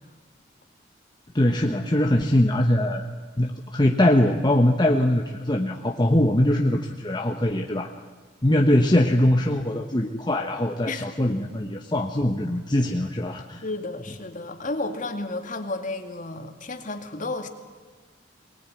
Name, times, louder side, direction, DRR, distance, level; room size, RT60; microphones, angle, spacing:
voice 1, 1.3-3.1 3.4-7.9 8.4-13.6, left 1 dB, 25° left, 3 dB, 1.1 m, -22 dB
voice 2, 10.9-11.4 13.6-17.5, left 2 dB, 45° left, 6 dB, 2.3 m, -32 dB
23.5 x 20.0 x 9.4 m, 1.5 s
head